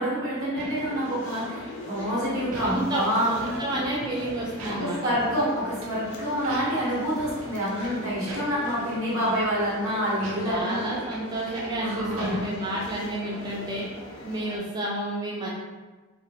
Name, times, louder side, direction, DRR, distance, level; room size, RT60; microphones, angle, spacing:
voice 1, 0.0-3.3 4.7-10.8 11.8-12.4, equal, 70° right, -8 dB, 0.9 m, -27 dB
sound 1, 0.6-14.6, left 2 dB, 60° left, 0.5 m, -41 dB
sound 2, 0.6-1.7 2.1-5.5 5.7-5.9 6.3-7.0 7.3-9.0 9.4-9.6 10.1-13.1 13.3-13.4, right 1 dB, 90° right, 0.5 m, -40 dB
voice 2, 2.6-5.1 10.4-13.9 14.2-15.5, right 1 dB, 20° right, -4 dB, 0.3 m, -30 dB
2.2 x 2.0 x 2.8 m, 1.3 s
head